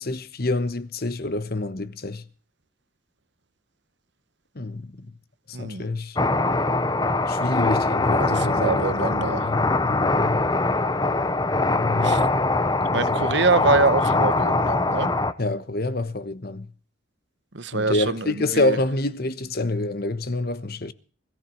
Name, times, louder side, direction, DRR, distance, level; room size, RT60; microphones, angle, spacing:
voice 1, 0.0-2.2 4.5-4.9 5.6-6.2 7.3-10.4 11.7-12.4 12.9-13.3 15.4-16.7 17.7-20.9, left 2 dB, 50° left, 1.2 m, -27 dB
voice 2, 5.5-5.9 8.2-9.5 12.0-12.2 12.9-15.1 17.5-18.8, right 3 dB, 60° right, 1.0 m, -25 dB
sound 1, 6.2-15.3, left 2 dB, 20° left, 0.9 m, -22 dB
21.5 x 14.5 x 4.6 m
head